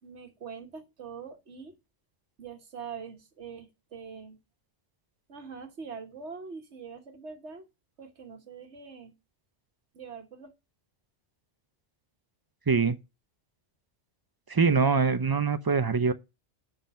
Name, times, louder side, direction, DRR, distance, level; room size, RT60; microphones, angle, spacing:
voice 1, 0.0-1.7 2.4-4.4 5.3-7.7 8.0-9.1 9.9-10.5, right 5 dB, 70° right, 1.6 m, -43 dB
voice 2, 12.7-13.0 14.5-16.1, right 5 dB, 35° right, 0.3 m, -23 dB
10.5 x 4.0 x 5.4 m
omnidirectional pair, 1.2 m